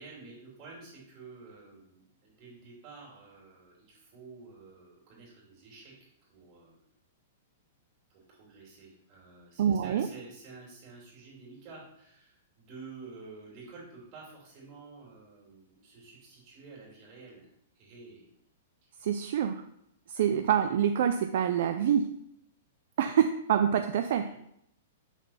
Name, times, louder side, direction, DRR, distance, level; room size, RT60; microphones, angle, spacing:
voice 1, 0.0-5.9 6.3-6.9 8.1-17.5 17.7-18.3 18.8-18.9 20.1-20.2 24.3-24.4, right 4 dB, 30° right, -4 dB, 2.8 m, -50 dB
voice 2, 9.6-10.1 19.0-19.6 20.1-22.1 23.0-24.3, right 9 dB, 55° right, 7 dB, 0.4 m, -26 dB
5.9 x 3.9 x 5.6 m, 0.75 s
hypercardioid pair, 165°, 0 cm